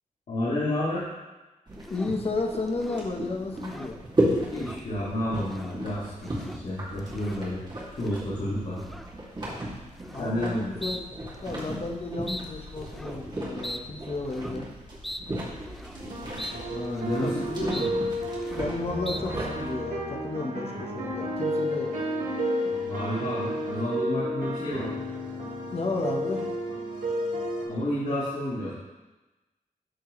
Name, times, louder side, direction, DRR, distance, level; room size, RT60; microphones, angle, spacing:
voice 1, 0.3-1.1 4.5-7.6 8.0-8.8 10.2-10.7 16.7-17.9 22.8-24.9 27.7-28.7, left 1 dB, 65° left, -11 dB, 2.7 m, -30 dB
sound 1, 1.7-19.7, right 1 dB, 35° right, 2.5 m, -35 dB
sound 2, 1.8-2.2 2.7-3.1 3.6-4.0 4.4-4.8 5.3-5.8 6.1-6.6 7.0-7.5 8.0-8.3 8.8-9.1 10.0-10.4 10.8-11.0 11.3-11.8 12.3-12.4 12.8-13.2 13.6-13.8 14.2-14.6 15.0-15.2 15.6-16.0 16.4-16.6 16.8-17.4 17.7-17.9 18.2-18.7 19.0-19.2, equal, ahead, 0.4 m, -40 dB
voice 2, 1.9-4.0 10.1-11.0 11.4-14.7 17.2-17.3 18.5-21.9 25.7-26.5, left 3 dB, 45° left, 1 dB, 1.2 m, -32 dB
sound 3, 15.9-27.6, equal, 70° right, 1.6 m, -32 dB
12.5 x 4.6 x 3.2 m, 1.1 s
wide cardioid pair, 90°, 14 cm